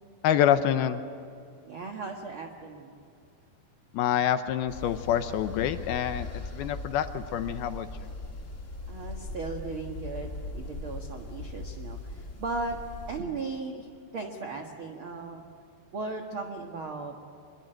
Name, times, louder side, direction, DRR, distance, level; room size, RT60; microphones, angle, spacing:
voice 1, 0.2-1.0 3.9-6.3 6.5-7.9, left 10 dB, 75° left, 9 dB, 2.5 m, -26 dB
voice 2, 1.6-3.0 8.9-12.8 13.1-13.9 14.1-15.4 15.9-17.1, right 3 dB, 55° right, 2 dB, 1.5 m, -37 dB
sound 1, 4.7-13.2, left 2 dB, 25° left, 1.7 m, -39 dB
26.0 x 23.0 x 9.1 m, 2.4 s
omnidirectional pair, 4.9 m